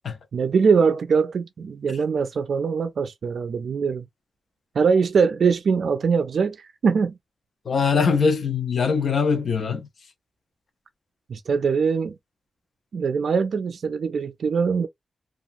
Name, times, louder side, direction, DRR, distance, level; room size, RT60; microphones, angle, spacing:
voice 1, 0.3-4.0 4.7-7.1 11.3-12.2 12.9-14.9, right 5 dB, 70° right, 0.3 m, -22 dB
voice 2, 7.7-9.9, left 5 dB, 65° left, 0.6 m, -22 dB
2.8 x 2.3 x 2.5 m
wide cardioid pair, 160°, 0 cm